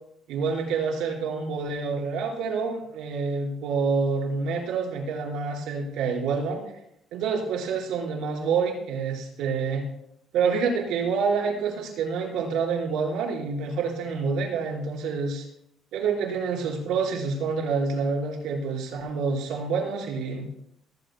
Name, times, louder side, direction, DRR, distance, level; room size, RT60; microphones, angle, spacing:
voice 1, 0.3-6.6 7.1-9.8 10.3-15.4 15.9-20.5, right 5 dB, 75° right, -1 dB, 4.4 m, -27 dB
19.0 x 16.0 x 2.2 m, 0.75 s
cardioid pair, 140°, 0 cm